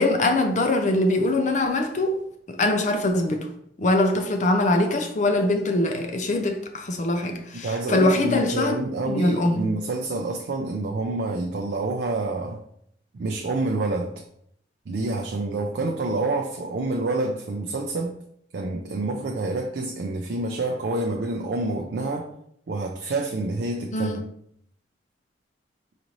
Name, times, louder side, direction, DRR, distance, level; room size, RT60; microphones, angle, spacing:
voice 1, 0.0-2.2 2.5-3.5 3.8-8.8 9.1-9.7 23.9-24.2, left 2 dB, 40° left, 0.5 m, -22 dB
voice 2, 7.6-12.6 13.1-14.1 14.9-18.1 18.5-22.3 22.7-24.2, right 2 dB, 60° right, 0.4 m, -27 dB
4.9 x 2.6 x 3.0 m
head